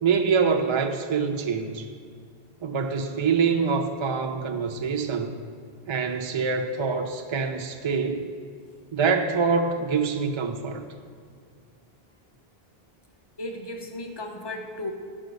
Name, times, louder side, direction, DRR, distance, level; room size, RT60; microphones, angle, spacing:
voice 1, 0.0-1.9 2.6-5.4 5.9-8.3 8.9-10.8, right 5 dB, 50° right, 4 dB, 0.3 m, -25 dB
voice 2, 13.4-14.9, left 1 dB, 30° left, 3 dB, 0.7 m, -35 dB
10.5 x 5.6 x 4.0 m, 2.1 s
omnidirectional pair, 1.0 m